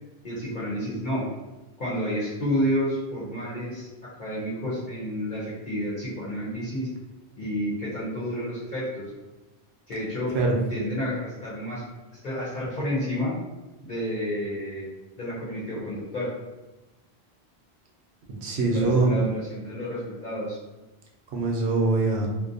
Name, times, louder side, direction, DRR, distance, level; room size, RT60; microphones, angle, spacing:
voice 1, 0.2-1.3 1.8-6.9 7.4-9.1 9.9-10.3 10.7-11.8 12.2-13.3 13.8-14.9 15.2-16.3 18.7-20.6, equal, 55° left, -9 dB, 0.8 m, -30 dB
voice 2, 18.3-19.2 21.3-22.3, right 3 dB, 85° right, -1 dB, 0.9 m, -23 dB
2.6 x 2.0 x 2.5 m, 1.1 s
omnidirectional pair, 1.1 m